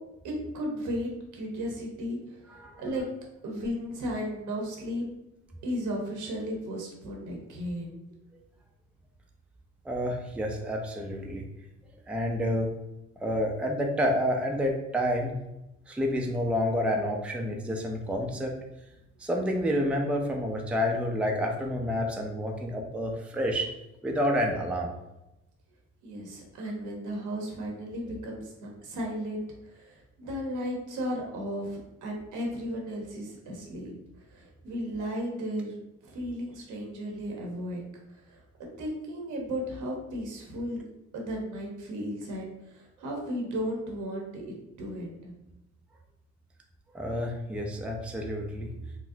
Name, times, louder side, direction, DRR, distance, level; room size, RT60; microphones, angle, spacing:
voice 1, 0.2-3.1 3.4-5.1 5.6-7.9 26.0-33.9 34.3-35.7 36.0-37.8 38.1-38.4 38.8-40.8 41.1-44.5 44.8-45.3, equal, 80° right, -1 dB, 1.0 m, -35 dB
voice 2, 2.5-2.8 8.3-8.4 9.8-11.4 12.1-12.7 13.2-15.4 15.9-18.5 19.2-23.7 24.0-24.9 46.9-48.7, equal, 5° right, 1 dB, 0.4 m, -29 dB
4.0 x 2.0 x 2.7 m, 0.91 s
cardioid pair, 90°, 30 cm